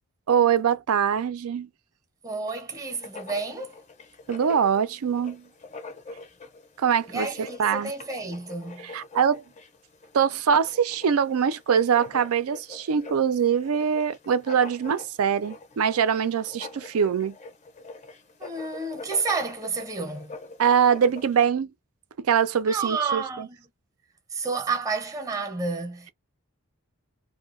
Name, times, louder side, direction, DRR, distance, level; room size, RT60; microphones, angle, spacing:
voice 1, 0.3-1.7 4.3-5.4 6.8-7.9 8.8-9.4 10.1-17.3 20.6-21.7 22.2-23.5, right 7 dB, 75° right, 0.4 m, -23 dB
voice 2, 2.2-3.8 7.1-8.9 18.4-20.3 22.7-23.6 24.3-26.1, right 4 dB, 15° right, 0.7 m, -30 dB
Writing, 2.7-21.5, left 3 dB, 30° left, 0.5 m, -44 dB
2.7 x 2.1 x 2.4 m
head